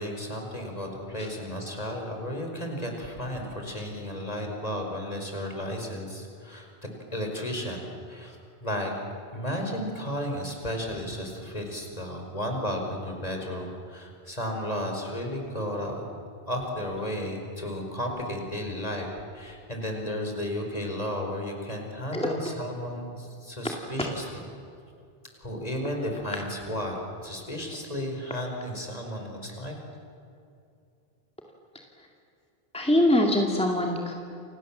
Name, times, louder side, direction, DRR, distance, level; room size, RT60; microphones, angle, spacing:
voice 1, 0.0-6.7 7.1-8.4 8.6-8.9 9.3-16.0 16.5-24.4 25.4-27.0 27.2-29.7, equal, 40° left, 2 dB, 5.1 m, -33 dB
voice 2, 32.7-34.1, left 1 dB, 5° left, 0 dB, 2.4 m, -23 dB
29.5 x 27.0 x 7.5 m, 2.5 s
omnidirectional pair, 1.0 m